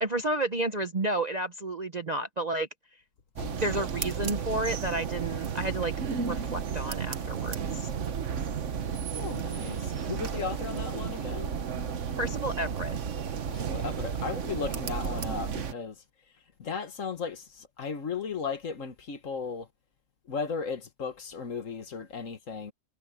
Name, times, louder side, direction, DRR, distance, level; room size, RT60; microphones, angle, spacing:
voice 1, 0.0-2.7 3.5-7.9 12.2-12.9, right 2 dB, 35° right, 0.7 m, -31 dB
sound 1, 3.3-15.7, right 7 dB, 50° right, 1.3 m, -33 dB
voice 2, 9.1-9.8 10.1-11.5 13.6-15.9 16.7-17.4 17.8-19.6 20.3-22.7, left 5 dB, 55° left, 1.7 m, -35 dB
omnidirectional pair, 1.7 m